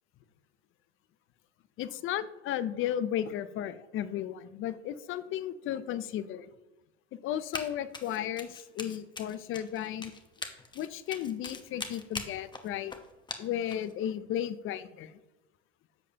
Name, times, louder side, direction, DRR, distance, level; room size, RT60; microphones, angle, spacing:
voice 1, 1.8-6.5 7.2-10.1 10.7-12.9 13.4-15.2, left 10 dB, 35° left, 14 dB, 0.6 m, -34 dB
Run, 7.5-7.7 7.9-13.9, left 4 dB, 15° left, 0.9 m, -41 dB
10.5 x 6.5 x 2.8 m, 1.0 s
hypercardioid pair, 100°, 35 cm